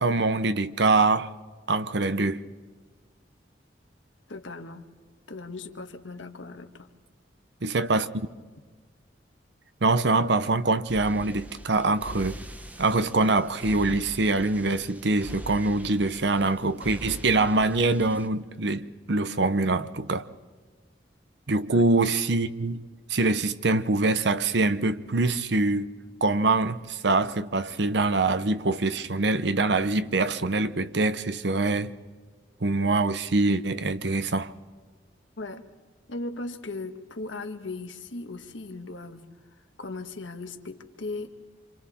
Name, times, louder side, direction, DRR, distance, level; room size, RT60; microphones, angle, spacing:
voice 1, 0.0-1.3 1.7-2.4 7.6-8.3 9.8-12.4 12.8-20.3 21.5-22.8 23.1-25.9 26.2-31.9 32.6-34.5, right 3 dB, 70° right, 0.9 m, -24 dB
voice 2, 4.3-4.9 5.3-6.9 21.7-21.9 35.4-35.7 36.1-39.3 39.8-41.4, left 2 dB, 90° left, 1.5 m, -38 dB
sound 1, 10.9-18.3, equal, 10° right, 0.9 m, -42 dB
27.0 x 26.5 x 4.3 m
head